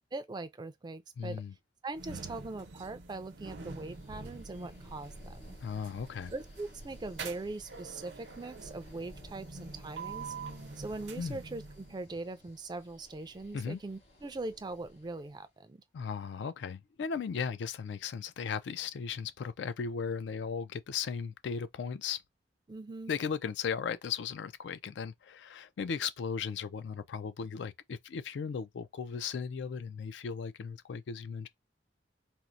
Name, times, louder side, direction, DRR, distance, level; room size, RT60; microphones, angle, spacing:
voice 1, 0.1-1.4 1.8-5.6 6.3-10.3 10.8-15.8 22.7-23.1, right 2 dB, 25° right, 0.3 m, -41 dB
voice 2, 1.2-1.5 5.6-6.3 11.2-11.4 13.5-13.8 15.9-22.2 23.1-31.5, left 6 dB, 80° left, 0.4 m, -36 dB
sound 1, 1.9-12.1, right 4 dB, 80° right, 0.7 m, -46 dB
sound 2, 3.7-15.4, equal, 65° left, 1.7 m, -56 dB
4.2 x 2.0 x 2.5 m
head